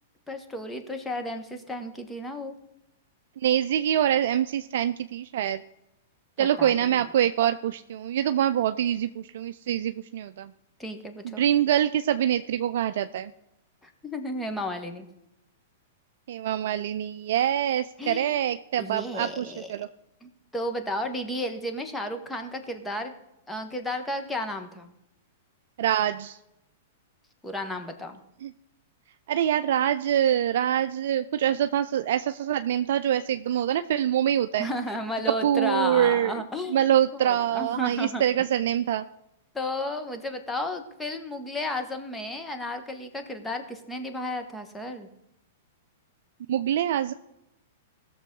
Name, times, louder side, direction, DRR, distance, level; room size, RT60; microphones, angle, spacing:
voice 1, 0.3-2.5 6.4-7.1 10.8-11.4 13.8-15.1 18.0-18.3 18.8-19.7 20.2-23.1 23.5-24.9 27.4-28.2 34.6-36.8 37.1-38.5 39.5-45.1, left 1 dB, 10° left, 5 dB, 1.4 m, -33 dB
voice 2, 3.4-5.6 6.4-10.5 11.2-13.3 16.3-19.9 25.8-26.4 28.4-28.5 29.3-34.7 35.3-36.4 36.7-39.0 46.5-47.1, right 10 dB, 65° right, 10 dB, 0.4 m, -25 dB
18.0 x 6.8 x 3.9 m, 0.87 s
hypercardioid pair, 115°, 0 cm